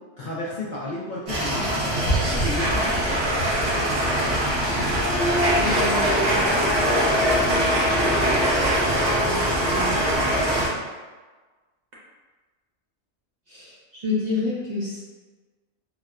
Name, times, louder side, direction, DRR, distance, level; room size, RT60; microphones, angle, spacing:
voice 1, 0.2-3.6, left 1 dB, 55° left, -6 dB, 0.6 m, -33 dB
sound 1, 1.3-10.7, equal, 70° right, 1.6 m, -22 dB
voice 2, 5.6-6.6 9.2-10.0 13.5-15.0, left 3 dB, 45° right, -7 dB, 0.6 m, -30 dB
4.1 x 2.1 x 2.3 m, 1.3 s
omnidirectional pair, 1.2 m